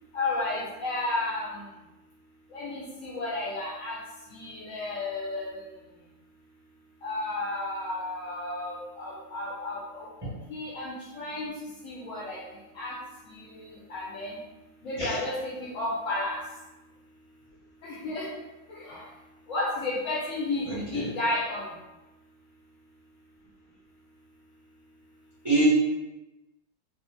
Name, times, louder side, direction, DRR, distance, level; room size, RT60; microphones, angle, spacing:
voice 1, 0.1-1.6 2.5-3.9 4.3-5.5 7.0-10.1 10.5-11.5 11.8-12.4 12.8-12.9 13.3-14.4 14.8-16.4 17.8-18.3 18.7-19.0 19.5-21.7, left 2 dB, 65° left, -6 dB, 0.9 m, -32 dB
voice 2, 20.6-21.1 25.4-25.7, right 3 dB, 25° right, -11 dB, 0.5 m, -26 dB
2.7 x 2.1 x 3.0 m, 1.0 s
omnidirectional pair, 1.8 m